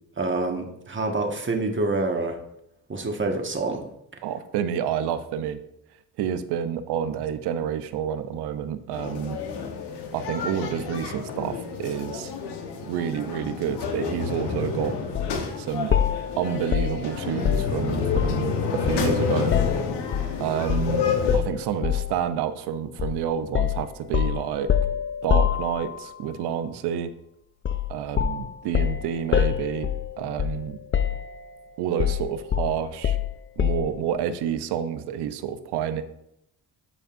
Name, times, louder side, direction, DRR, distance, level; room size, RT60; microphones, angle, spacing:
voice 1, 0.2-2.4 2.9-3.8, right 3 dB, 30° right, 2 dB, 1.5 m, -26 dB
voice 2, 4.2-5.6 6.2-9.4 10.1-12.3 12.9-15.0 15.6-15.9 16.4-19.6 20.4-21.1 21.3-24.7 25.2-27.1 27.9-30.8 31.8-33.2 33.6-36.0, right 8 dB, 85° right, 11 dB, 0.7 m, -29 dB
sound 1, 8.9-21.4, left 5 dB, 90° left, 1.2 m, -29 dB
sound 2, 15.2-15.4 15.9-18.5 18.9-20.3 20.7-20.9 21.3-22.2 23.0-23.2 23.6-26.1 27.6-27.9 28.2-30.7 30.9-31.6 32.0-34.0, left 9 dB, 30° left, 0.5 m, -25 dB
12.0 x 5.3 x 2.6 m, 0.77 s
cardioid pair, 70°, 39 cm